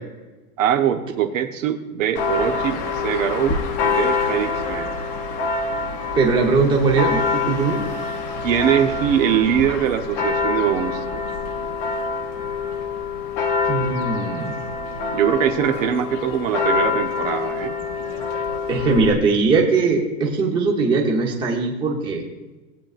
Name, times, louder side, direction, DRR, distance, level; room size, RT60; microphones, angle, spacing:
voice 1, 0.6-4.9 8.4-11.2 15.1-17.8, right 9 dB, 55° right, 7 dB, 0.9 m, -22 dB
Church bell, 2.1-19.1, left 4 dB, 20° left, 0.6 m, -25 dB
voice 2, 6.1-7.8 13.7-14.6 18.7-22.2, right 4 dB, 10° right, 0 dB, 0.9 m, -20 dB
18.0 x 9.1 x 2.5 m, 1.1 s
supercardioid pair, 170°, 47 cm